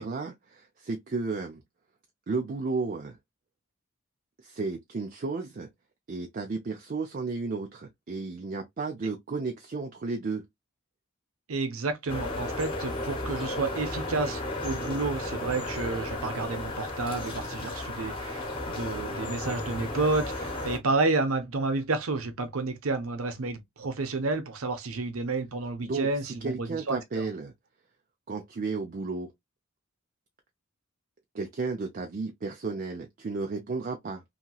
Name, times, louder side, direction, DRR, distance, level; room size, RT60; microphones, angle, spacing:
voice 1, 0.0-1.6 2.3-3.2 4.4-5.7 6.1-10.5 25.8-26.1 26.4-27.5 28.3-29.3 31.3-34.2, right 4 dB, 40° right, 0.4 m, -33 dB
voice 2, 11.5-27.3, right 3 dB, 75° right, 0.7 m, -30 dB
sound 1, 12.1-20.8, left 2 dB, 25° left, 1.0 m, -34 dB
2.8 x 2.8 x 2.2 m
head